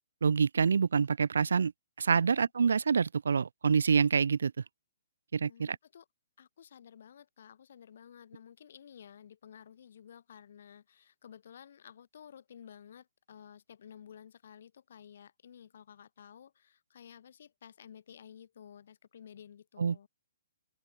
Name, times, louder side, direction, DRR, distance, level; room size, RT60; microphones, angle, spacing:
voice 1, 0.2-1.7 2.0-4.5 5.3-5.8 19.8-20.0, right 6 dB, 85° right, 0.5 m, -26 dB
voice 2, 5.4-6.1 6.4-20.1, left 8 dB, 60° left, 7.1 m, -53 dB
open air
hypercardioid pair, 155°, 0 cm